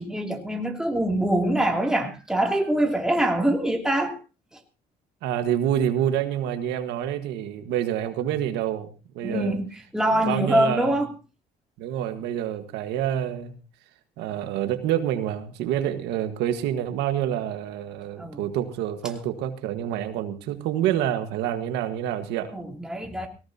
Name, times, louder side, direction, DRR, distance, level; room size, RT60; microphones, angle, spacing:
voice 1, 0.0-4.2 4.5-4.6 9.2-11.1 18.2-18.4 22.5-23.3, right 1 dB, 5° right, 2 dB, 2.9 m, -24 dB
voice 2, 5.2-9.6 10.2-10.9 11.8-13.5 14.2-22.5, right 10 dB, 90° right, 8 dB, 1.7 m, -27 dB
19.0 x 17.5 x 2.9 m, 0.32 s
cardioid pair, 110°, 17 cm